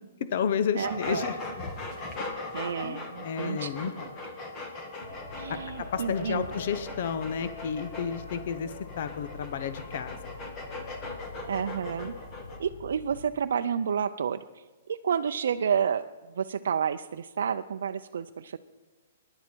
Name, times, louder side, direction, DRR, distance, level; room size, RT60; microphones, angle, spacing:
voice 1, 0.2-1.4 2.8-4.1 5.5-10.2, left 7 dB, 50° left, 11 dB, 0.9 m, -31 dB
sound 1, 0.8-12.6, left 2 dB, 20° left, 1.8 m, -39 dB
voice 2, 0.8-1.3 2.5-3.7 5.4-6.5 11.5-12.1 12.6-16.1 16.3-18.6, right 7 dB, 75° right, 7 dB, 0.5 m, -30 dB
sound 2, 5.0-13.2, left 3 dB, 80° left, 6.6 m, -44 dB
24.0 x 11.5 x 4.5 m, 1.3 s
hypercardioid pair, 165°, 0 cm